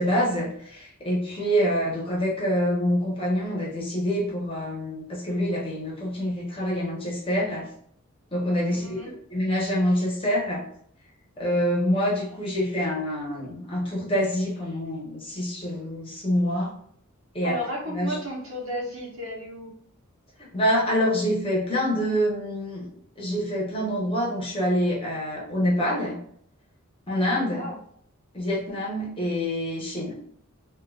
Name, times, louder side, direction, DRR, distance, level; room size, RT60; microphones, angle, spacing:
voice 1, 0.0-7.7 8.3-10.6 11.4-16.7 17.3-17.6 17.9-18.1 20.4-26.2 27.1-27.7 28.3-30.1, equal, 25° left, -3 dB, 1.0 m, -26 dB
voice 2, 8.7-9.1 17.4-19.7 27.2-27.8, equal, 70° right, -3 dB, 1.3 m, -34 dB
3.8 x 2.6 x 2.4 m, 0.64 s
head